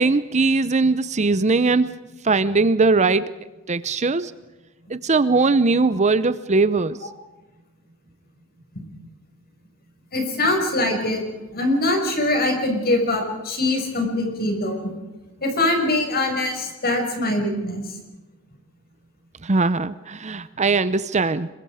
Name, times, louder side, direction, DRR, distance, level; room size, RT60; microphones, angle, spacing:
voice 1, 0.0-1.9 2.2-3.3 3.7-4.3 4.9-7.0 19.4-21.5, right 3 dB, 30° right, 15 dB, 0.7 m, -20 dB
voice 2, 10.1-11.2 11.5-14.9 15.4-17.8, left 2 dB, 45° left, 3 dB, 6.2 m, -23 dB
27.0 x 23.0 x 5.0 m, 1.1 s
head